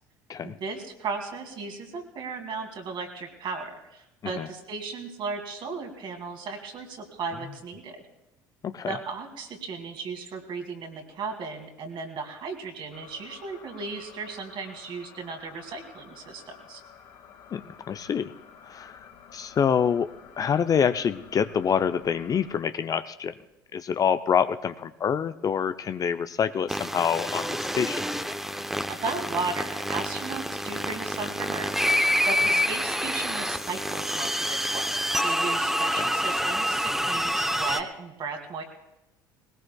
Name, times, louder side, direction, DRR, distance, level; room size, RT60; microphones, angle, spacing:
voice 1, 0.4-8.0 8.8-16.8 28.9-38.6, right 4 dB, 50° right, 4 dB, 2.5 m, -36 dB
voice 2, 8.6-9.0 17.5-17.6 17.9-18.3 18.7-19.0 19.3-20.1 20.4-23.3 23.7-28.0, left 7 dB, 35° left, 11 dB, 0.5 m, -26 dB
sound 1, 12.9-22.6, left 7 dB, 60° left, 1.9 m, -51 dB
sound 2, 26.7-37.8, equal, 5° right, 0.8 m, -27 dB
20.5 x 18.0 x 2.3 m, 0.90 s
hypercardioid pair, 65°, 10 cm